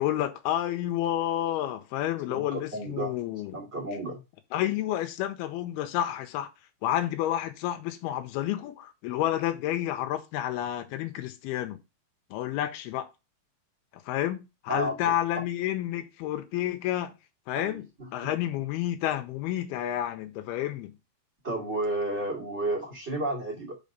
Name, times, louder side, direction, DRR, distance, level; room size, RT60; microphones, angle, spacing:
voice 1, 0.0-3.5 4.5-6.5 6.8-11.8 12.3-13.1 13.9-17.1 17.5-17.9 18.1-20.9, left 12 dB, 90° left, 2.6 m, -30 dB
voice 2, 2.3-3.1 3.5-4.2 14.7-15.1 17.5-18.3 21.4-23.8, right 1 dB, 25° right, 1.7 m, -32 dB
5.7 x 5.3 x 5.3 m
omnidirectional pair, 4.4 m